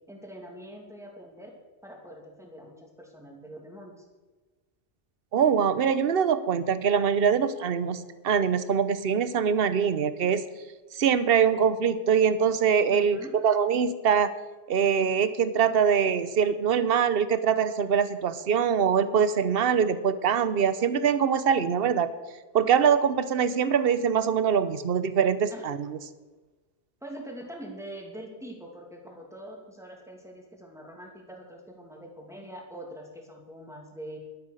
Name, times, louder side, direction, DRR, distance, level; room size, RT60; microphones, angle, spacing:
voice 1, 0.1-1.5 1.8-4.0 12.9-13.3 25.5-25.6 27.0-34.2, right 1 dB, ahead, 0 dB, 2.7 m, -43 dB
voice 2, 5.3-10.4 10.9-14.3 14.7-22.1 22.5-26.0, right 7 dB, 60° right, 14 dB, 1.0 m, -23 dB
12.0 x 10.5 x 6.6 m, 1.3 s
omnidirectional pair, 1.2 m